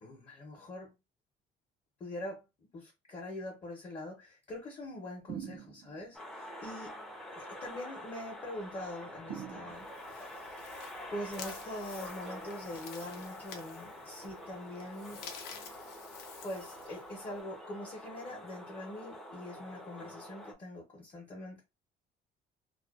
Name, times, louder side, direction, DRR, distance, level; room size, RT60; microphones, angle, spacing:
voice 1, 0.0-0.9 2.0-7.0 7.3-10.7 11.1-15.2 16.4-21.6, left 1 dB, 35° left, 0.8 m, -43 dB
sound 1, 5.3-6.1 9.3-10.2, right 9 dB, 55° right, 0.4 m, -43 dB
sound 2, 6.1-20.5, left 1 dB, ahead, 0.5 m, -47 dB
sound 3, 9.7-17.4, left 6 dB, 75° left, 0.6 m, -50 dB
2.4 x 2.2 x 2.4 m
cardioid pair, 110°, 17 cm